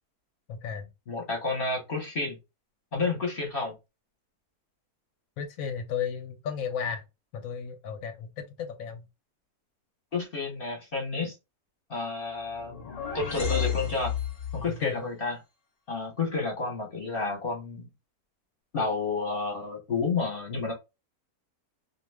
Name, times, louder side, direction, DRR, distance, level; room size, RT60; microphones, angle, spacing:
voice 1, 0.5-0.9 5.4-7.0 7.3-9.0 14.7-15.0, left 7 dB, 70° left, 0.9 m, -34 dB
voice 2, 1.1-2.4 2.9-3.8 10.1-11.3 11.9-12.9 13.1-14.1 14.5-15.4 15.9-17.9 18.7-20.7, left 3 dB, 45° left, 0.9 m, -30 dB
sound 1, 12.4-14.8, left 8 dB, 85° left, 0.3 m, -32 dB
2.4 x 2.2 x 3.2 m
omnidirectional pair, 1.6 m